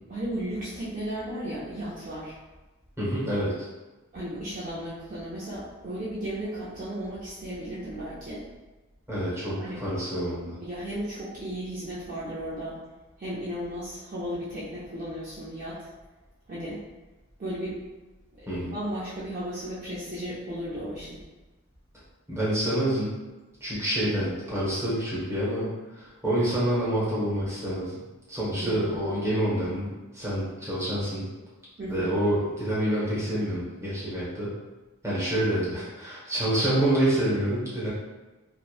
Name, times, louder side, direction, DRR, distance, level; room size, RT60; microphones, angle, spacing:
voice 1, 0.1-2.4 4.1-8.4 9.6-9.8 10.6-12.8 13.2-15.9 16.5-16.8 17.4-17.8 18.4-21.2 28.6-29.0 31.8-32.1, right 1 dB, 35° right, -8 dB, 0.4 m, -35 dB
voice 2, 3.0-3.7 9.1-10.6 18.5-18.7 22.3-23.1 23.6-27.9 28.3-31.2 31.9-34.5 35.0-37.9, right 1 dB, 10° right, -9 dB, 0.8 m, -27 dB
2.9 x 2.1 x 2.3 m, 1.2 s
head